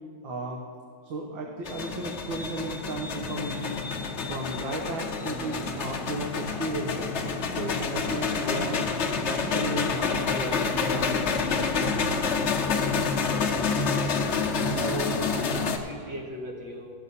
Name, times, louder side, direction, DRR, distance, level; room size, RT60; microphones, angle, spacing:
voice 1, 0.2-0.6 1.0-3.8 4.3-7.1 7.5-8.9 9.2-11.4, right 1 dB, 80° right, 0 dB, 1.8 m, -34 dB
sound 1, 1.6-15.8, left 5 dB, 50° left, 0.9 m, -28 dB
sound 2, 3.0-9.7, left 2 dB, 10° right, 0.9 m, -43 dB
voice 2, 14.6-16.9, right 1 dB, 65° right, -2 dB, 2.3 m, -36 dB
16.5 x 7.2 x 4.1 m, 2.3 s
omnidirectional pair, 2.1 m